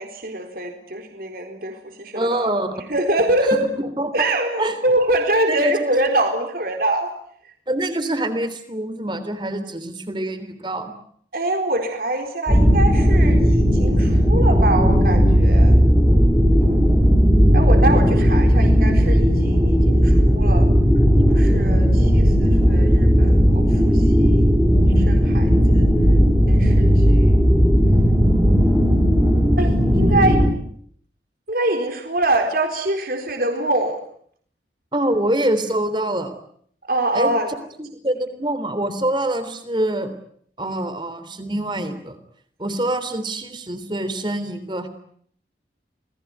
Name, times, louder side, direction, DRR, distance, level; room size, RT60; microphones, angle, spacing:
voice 1, 0.0-2.5 2.7-3.7 4.1-7.1 11.3-15.8 17.5-20.7 21.3-24.4 25.0-25.8 26.5-27.4 29.6-30.4 31.5-34.0 36.9-37.5, right 1 dB, 55° right, 5 dB, 4.1 m, -24 dB
voice 2, 2.1-2.9 3.7-4.3 4.6-4.8 5.5-5.9 7.7-10.9 34.9-36.3 37.1-37.3 37.8-40.1 40.6-42.2 42.6-44.9, right 1 dB, 25° right, 11 dB, 3.4 m, -25 dB
sound 1, 12.5-30.5, equal, 5° right, 5.0 m, -15 dB
28.5 x 21.0 x 9.4 m, 0.64 s
head